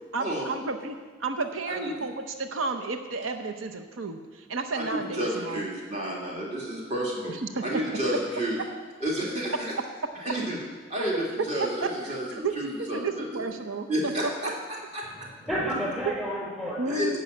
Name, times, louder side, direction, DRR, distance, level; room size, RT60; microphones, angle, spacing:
voice 1, 0.1-5.6 7.3-7.6 12.4-12.5 12.9-14.1 16.8-17.2, right 3 dB, 85° right, 6 dB, 0.8 m, -32 dB
voice 2, 1.7-2.0 4.7-7.3 7.6-8.6 9.0-9.7 10.2-10.6 10.9-13.4 13.9-15.1 16.9-17.2, right 1 dB, 35° right, -3 dB, 2.4 m, -31 dB
voice 3, 15.0-17.1, equal, 5° right, -5 dB, 4.0 m, -32 dB
11.0 x 5.5 x 8.4 m, 1.4 s
head